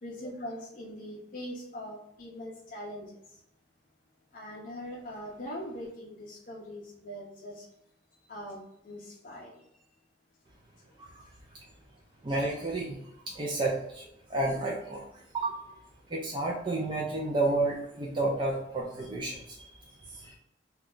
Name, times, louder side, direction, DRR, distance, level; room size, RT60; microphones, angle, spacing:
voice 1, 0.0-3.4 4.3-7.7 8.3-9.6, equal, 45° left, -3 dB, 0.5 m, -42 dB
voice 2, 12.2-13.0 13.3-15.6 16.1-19.7 20.1-20.3, right 2 dB, 25° right, -3 dB, 0.4 m, -31 dB
3.1 x 2.2 x 3.7 m, 0.79 s
head